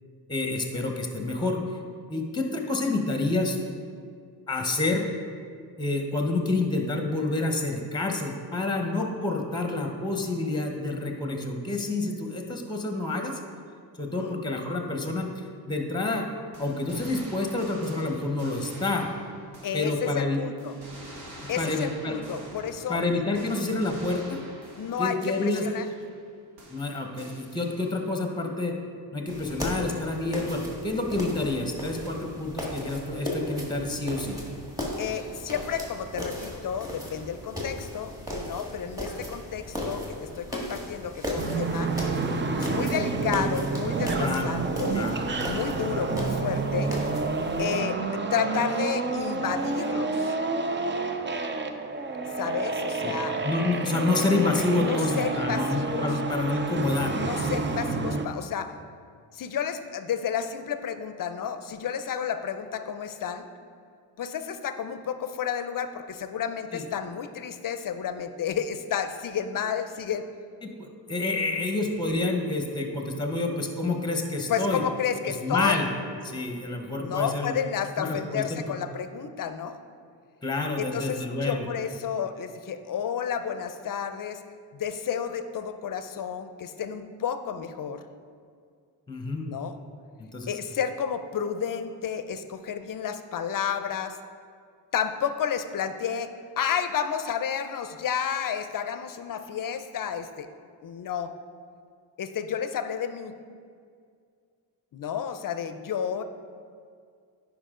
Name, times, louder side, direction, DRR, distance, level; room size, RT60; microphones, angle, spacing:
voice 1, 0.3-1.6 2.1-3.6 4.5-5.0 5.8-13.4 14.0-16.3 16.6-19.1 19.7-20.4 21.6-22.2 22.9-24.4 25.0-25.7 26.7-28.7 29.1-34.4 44.2-44.5 44.9-45.2 53.0-53.1 53.4-57.1 66.7-66.8 70.6-74.8 75.2-75.8 76.2-77.6 78.0-78.6 80.4-81.7 89.1-89.5 90.2-90.5, left 2 dB, 10° left, 3 dB, 0.9 m, -28 dB
sound 1, 16.5-20.2 20.6-26.3 26.6-28.2 29.3-30.1, right 1 dB, 65° right, 1.9 m, -47 dB
voice 2, 19.6-20.7 21.5-23.0 24.8-25.9 35.0-38.1 38.4-41.9 42.6-45.1 45.4-46.9 47.6-50.4 52.4-53.4 54.8-56.1 57.2-58.8 59.3-63.5 64.2-70.2 74.5-75.8 77.0-79.8 80.8-84.4 84.7-88.0 89.5-89.8 90.5-94.2 94.9-100.5 100.8-101.3 102.2-103.3 104.9-106.2, left 8 dB, 50° left, 10 dB, 0.6 m, -31 dB
sound 2, 29.3-47.6, left 1 dB, 10° right, 1.8 m, -36 dB
sound 3, 41.4-58.3, right 4 dB, 25° right, 0.5 m, -29 dB
10.5 x 5.0 x 3.7 m, 2.2 s
cardioid pair, 85°, 42 cm